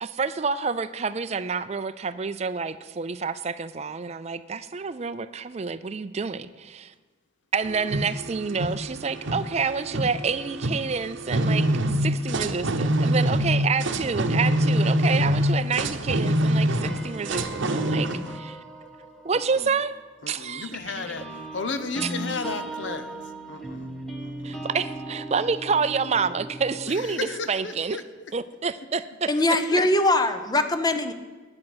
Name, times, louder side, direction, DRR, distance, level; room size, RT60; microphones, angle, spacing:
voice 1, 0.0-6.9 7.5-18.6 19.2-19.9 20.3-21.1 22.0-22.1 24.4-28.0 28.3-29.3, right 5 dB, 35° right, 13 dB, 0.4 m, -28 dB
sound 1, 7.7-18.4, equal, 75° right, 0.8 m, -25 dB
sound 2, 16.8-20.2 20.7-27.2, right 1 dB, ahead, 1.2 m, -38 dB
voice 2, 19.3-19.7 20.2-21.2 21.5-23.1 23.5-23.9 24.2-24.6 26.8-28.0 29.4-29.5 29.7-29.9, left 4 dB, 70° left, 10 dB, 0.9 m, -34 dB
voice 3, 29.3-31.1, left 2 dB, 20° left, 9 dB, 0.8 m, -22 dB
9.8 x 8.7 x 7.9 m, 1.4 s
head